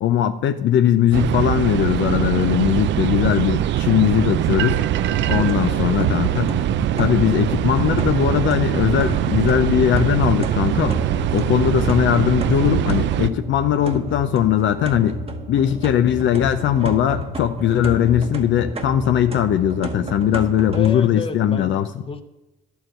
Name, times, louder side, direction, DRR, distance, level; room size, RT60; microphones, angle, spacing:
voice 1, 0.0-4.8 5.3-6.5 7.0-11.0 11.3-15.2 15.5-21.9, left 10 dB, 70° left, 9 dB, 0.5 m, -19 dB
sound 1, 1.1-13.3, right 12 dB, 70° right, 0.4 m, -22 dB
sound 2, 5.0-20.9, equal, 30° right, 1.1 m, -31 dB
voice 2, 5.3-6.0 20.7-22.2, left 4 dB, 25° left, 8 dB, 0.9 m, -32 dB
11.0 x 4.7 x 7.6 m, 1.0 s
cardioid pair, 90°, 20 cm